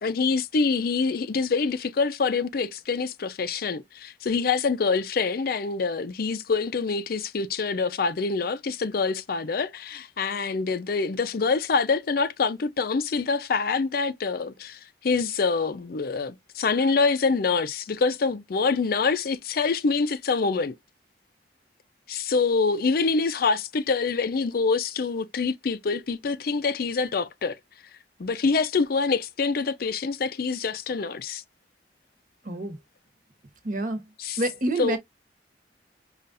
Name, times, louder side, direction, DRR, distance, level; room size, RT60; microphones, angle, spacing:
voice 1, 0.0-20.7 22.1-27.6 28.2-31.4 34.2-34.4 34.8-35.0, left 4 dB, 55° left, 0.5 m, -25 dB
voice 2, 32.4-32.8 33.6-34.1 34.4-35.0, right 2 dB, 50° right, 1.0 m, -27 dB
5.4 x 2.4 x 2.6 m
head